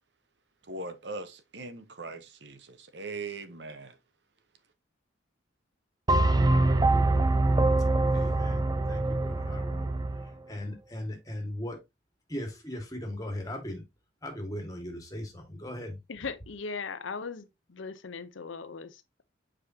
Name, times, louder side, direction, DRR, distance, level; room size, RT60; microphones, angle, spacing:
voice 1, 0.6-4.0, right 3 dB, 60° right, 0.9 m, -40 dB
sound 1, 6.1-10.3, right 2 dB, 20° right, 0.5 m, -24 dB
voice 2, 8.1-11.8 12.3-13.8 14.2-16.0, left 1 dB, 20° left, 1.8 m, -38 dB
voice 3, 16.1-19.2, left 4 dB, 80° left, 0.7 m, -39 dB
6.8 x 5.0 x 2.7 m
head